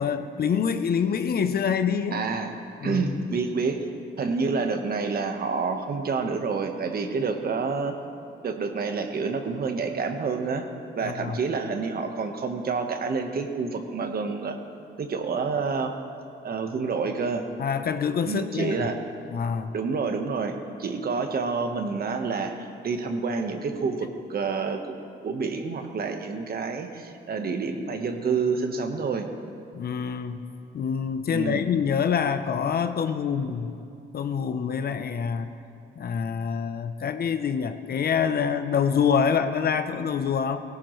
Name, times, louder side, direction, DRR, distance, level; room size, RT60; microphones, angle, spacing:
voice 1, 0.0-2.2 2.8-3.2 11.0-11.4 17.6-18.9 19.3-19.7 29.7-30.4 30.7-33.7 34.1-35.5 36.0-40.6, left 7 dB, 50° left, 10 dB, 0.8 m, -26 dB
voice 2, 2.1-2.5 2.8-3.9 4.2-8.0 8.4-10.7 10.9-14.6 15.0-15.9 16.4-17.4 18.3-19.0 19.7-25.0 25.2-29.3 31.3-31.7, right 4 dB, 50° right, 5 dB, 1.3 m, -28 dB
17.5 x 17.0 x 3.2 m, 2.5 s
cardioid pair, 90°, 20 cm